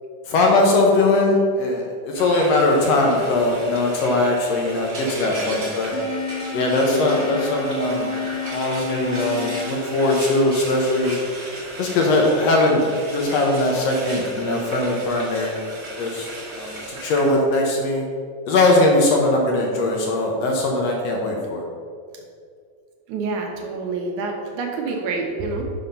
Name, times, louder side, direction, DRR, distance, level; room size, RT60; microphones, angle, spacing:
voice 1, 0.3-6.0 6.5-8.1 8.4-11.2 11.8-15.5 16.0-18.0 18.4-21.7, left 2 dB, 70° left, 0 dB, 1.6 m, -20 dB
Frying (food), 2.1-17.3, right 2 dB, 45° right, 1.2 m, -35 dB
sound 1, 5.9-11.0, left 3 dB, 90° left, 1.1 m, -30 dB
voice 2, 23.1-25.7, right 3 dB, 75° right, 1 dB, 2.0 m, -27 dB
5.8 x 5.6 x 5.3 m, 2.1 s
omnidirectional pair, 3.9 m